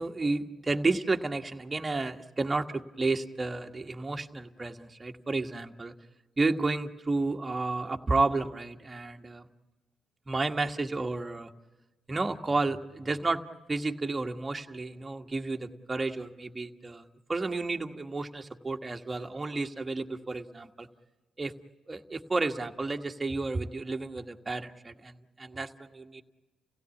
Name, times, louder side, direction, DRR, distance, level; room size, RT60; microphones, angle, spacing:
voice 1, 0.0-5.9 6.4-9.5 10.3-11.5 12.1-13.4 13.7-17.0 17.3-20.9 21.4-21.5 21.9-26.2, right 3 dB, 30° right, 4 dB, 1.6 m, -31 dB
30.0 x 16.5 x 8.5 m, 1.2 s
supercardioid pair, 50°, 0 cm